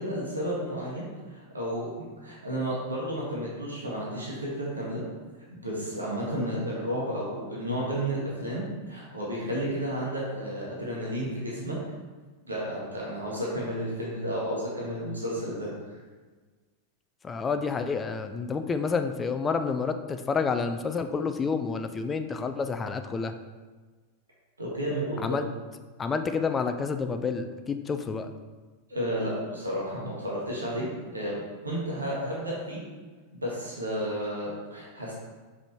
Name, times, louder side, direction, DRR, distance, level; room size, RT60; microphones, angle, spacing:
voice 1, 0.0-5.0 5.5-11.7 12.4-15.7 24.6-25.4 28.9-32.8 33.3-35.1, equal, 80° right, -5 dB, 1.5 m, -32 dB
voice 2, 17.2-23.3 25.2-25.5 26.0-28.3, left 5 dB, 20° left, 8 dB, 0.4 m, -29 dB
5.1 x 4.9 x 4.2 m, 1.3 s
figure-of-eight pair, 90°, 0 cm